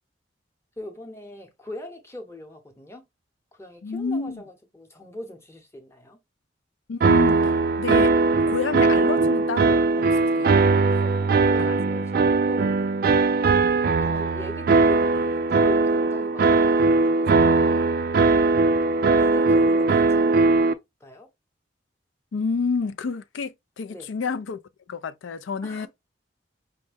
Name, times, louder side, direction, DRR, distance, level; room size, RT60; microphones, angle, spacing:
voice 1, 0.8-3.0 3.5-6.2 10.9-12.8 14.0-17.9 19.2-20.5 21.0-21.3 23.9-24.1 25.6-25.9, left 1 dB, 15° left, 0.8 m, -41 dB
voice 2, 3.8-4.4 6.9-8.1 8.5-10.6 11.6-11.7 13.5-13.8 22.3-24.6 24.9-25.9, left 5 dB, 80° left, 0.4 m, -29 dB
sound 1, 7.0-20.7, right 3 dB, 50° right, 0.3 m, -20 dB
5.3 x 2.1 x 3.4 m
head